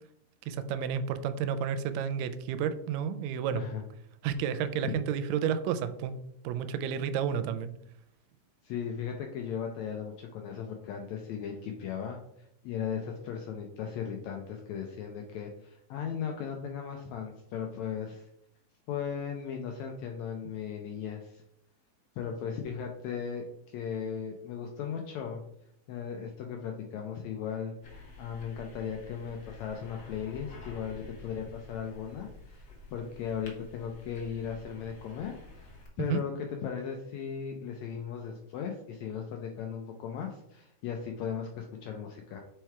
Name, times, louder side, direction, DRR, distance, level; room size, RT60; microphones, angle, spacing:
voice 1, 0.4-3.6 4.2-6.1 6.4-7.7 36.1-36.2, right 8 dB, 85° right, 11 dB, 2.2 m, -31 dB
voice 2, 3.5-3.8 4.8-5.0 8.6-12.2 12.6-18.3 18.9-21.4 22.1-25.4 25.9-36.3 36.6-42.4, left 7 dB, 80° left, 3 dB, 1.6 m, -37 dB
sound 1, 27.8-35.9, left 3 dB, 60° left, 1.0 m, -49 dB
4.7 x 4.6 x 4.4 m, 0.75 s
omnidirectional pair, 3.8 m